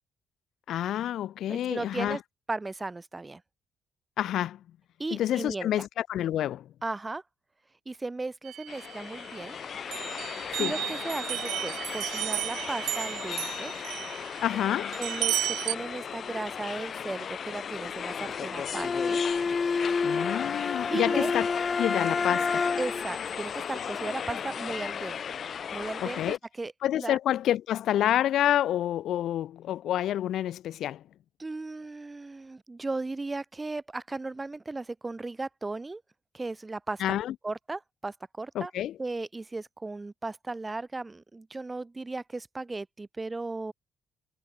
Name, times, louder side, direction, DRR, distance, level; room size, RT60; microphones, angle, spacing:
voice 1, 0.7-2.2 4.2-4.6 5.1-6.7 10.5-10.7 14.4-15.0 20.0-21.5 21.8-22.7 26.0-26.4 26.8-31.0 37.0-37.3 38.5-39.0, left 12 dB, 75° left, 0.6 m, -28 dB
voice 2, 1.5-2.2 2.5-3.4 5.0-5.7 6.8-7.2 7.9-9.6 10.3-13.7 15.0-19.2 20.9-21.3 22.8-25.2 25.7-27.2 31.4-36.0 36.3-37.0 37.4-38.7 39.0-43.7, right 3 dB, 20° right, 7.8 m, -36 dB
sound 1, 8.4-9.5 9.9-15.7, right 14 dB, 85° right, 3.0 m, -34 dB
sound 2, 8.7-26.4, left 7 dB, 55° left, 1.3 m, -36 dB
Bowed string instrument, 18.7-23.1, left 4 dB, 35° left, 2.2 m, -28 dB
cardioid pair, 90°, 0 cm